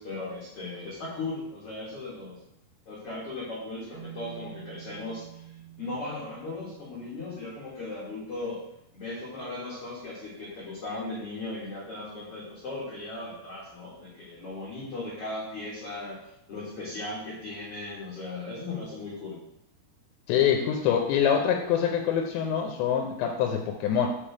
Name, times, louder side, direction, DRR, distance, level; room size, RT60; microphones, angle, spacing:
voice 1, 0.0-2.4 2.8-8.6 8.9-19.4, left 2 dB, 60° left, -6 dB, 1.5 m, -37 dB
sound 1, 3.9-8.2, right 12 dB, 85° right, 3.6 m, -48 dB
voice 2, 20.3-24.1, left 8 dB, 85° left, 2 dB, 2.9 m, -25 dB
8.4 x 5.7 x 3.5 m, 0.79 s
omnidirectional pair, 5.3 m